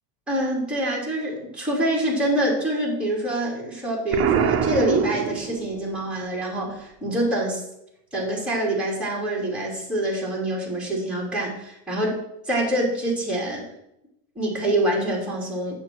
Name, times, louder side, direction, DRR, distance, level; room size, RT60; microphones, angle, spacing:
voice 1, 0.3-7.6 8.1-12.2 12.4-13.7 14.3-15.7, right 1 dB, ahead, -4 dB, 2.9 m, -25 dB
Explosion, 4.1-5.9, right 8 dB, 30° right, 0.6 m, -24 dB
8.9 x 7.0 x 4.5 m, 0.82 s
cardioid pair, 160°, 49 cm